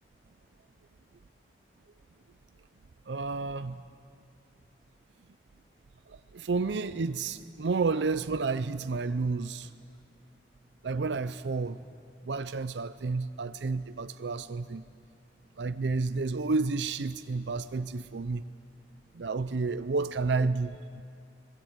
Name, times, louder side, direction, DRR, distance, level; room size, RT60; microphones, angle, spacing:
voice 1, 3.1-3.8 6.1-9.7 10.8-11.8 12.2-14.8 15.6-18.4 19.1-21.0, right 4 dB, 90° right, 12 dB, 0.6 m, -31 dB
25.5 x 21.0 x 8.1 m, 2.3 s
head